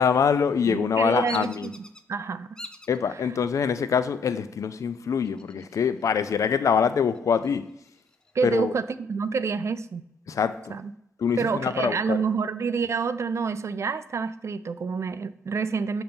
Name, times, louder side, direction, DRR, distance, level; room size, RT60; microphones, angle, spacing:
voice 1, 0.0-1.7 2.9-7.7 8.4-8.7 10.3-10.8 11.2-12.2, left 6 dB, 80° left, 12 dB, 0.4 m, -24 dB
voice 2, 0.7-1.8 2.1-2.5 8.3-10.0 10.7-10.9 11.4-16.0, right 5 dB, 60° right, 14 dB, 0.3 m, -28 dB
Bird vocalization bird call bird song, 1.3-2.0 2.6-3.0 3.6-4.1 5.2-6.0 6.4-6.5 6.9-8.3, left 1 dB, 15° left, 0.4 m, -43 dB
6.5 x 3.0 x 5.2 m, 0.77 s
cardioid pair, 65°, 5 cm